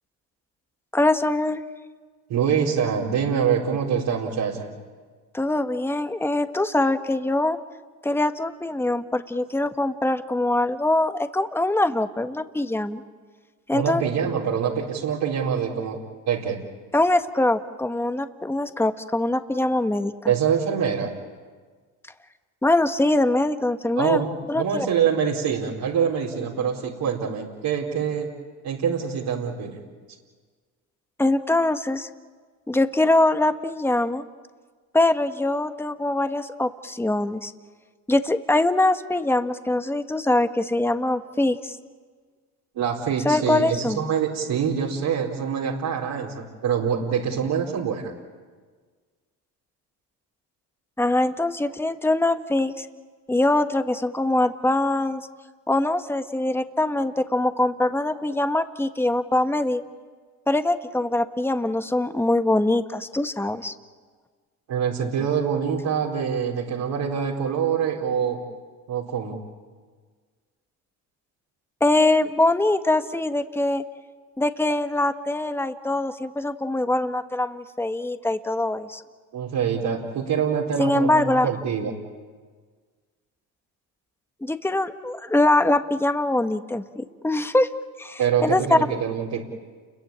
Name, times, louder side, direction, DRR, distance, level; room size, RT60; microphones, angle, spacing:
voice 1, 0.9-1.6 5.3-7.6 8.0-13.0 13.7-14.0 16.9-20.1 22.6-24.2 24.5-24.9 31.2-32.1 32.7-34.2 34.9-37.5 38.1-41.8 43.2-44.0 51.0-52.9 53.3-55.2 55.7-59.8 60.5-63.7 71.8-73.8 74.4-79.0 80.8-81.5 84.4-87.7 88.0-88.8, left 2 dB, 5° left, 9 dB, 1.4 m, -23 dB
voice 2, 2.3-4.7 13.7-16.0 16.3-16.6 20.3-21.1 24.0-28.3 28.6-29.8 42.7-48.1 64.7-68.4 68.9-69.4 79.3-81.9 88.2-89.4, right 7 dB, 60° right, -5 dB, 4.5 m, -25 dB
29.5 x 22.5 x 8.9 m, 1.5 s
supercardioid pair, 80°, 43 cm